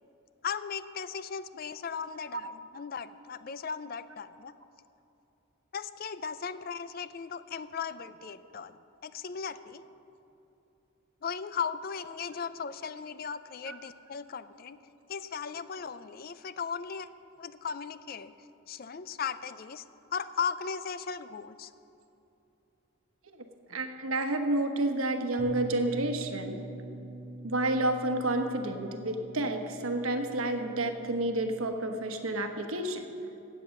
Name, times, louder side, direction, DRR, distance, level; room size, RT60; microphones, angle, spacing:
voice 1, 0.4-4.5 5.7-9.9 11.2-14.8 15.1-17.1 17.4-18.3 18.7-19.8 20.1-21.7, left 6 dB, 45° left, 14 dB, 0.4 m, -37 dB
voice 2, 23.7-26.6 27.4-33.1, right 2 dB, 80° right, 5 dB, 1.2 m, -30 dB
Bass guitar, 25.4-31.6, right 2 dB, 70° left, 3.1 m, -44 dB
15.5 x 8.5 x 6.4 m, 2.8 s
head